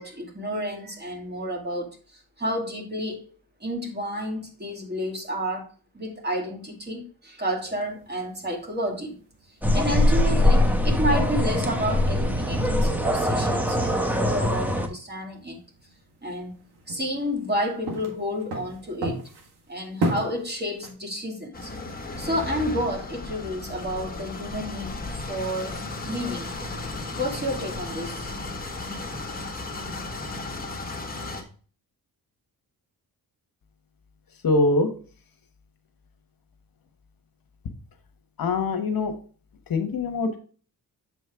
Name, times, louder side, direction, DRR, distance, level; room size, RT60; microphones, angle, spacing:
voice 1, 0.0-3.3 3.6-5.7 5.9-9.2 9.7-15.6 16.2-16.6 16.9-19.2 19.7-21.7 22.2-25.0 25.3-25.8 26.0-26.5 27.2-28.3, equal, 25° right, 2.4 m, -30 dB
sound 1, 7.6-20.9, right 1 dB, 85° right, 1.7 m, -38 dB
sound 2, 9.6-14.9, left 1 dB, 5° right, 1.0 m, -22 dB
sound 3, 21.5-31.4, left 3 dB, 25° left, 1.4 m, -35 dB
voice 2, 34.4-34.9 38.4-39.1 39.7-40.4, left 2 dB, 65° left, 1.2 m, -23 dB
7.4 x 5.2 x 3.5 m
cardioid pair, 100°, 38 cm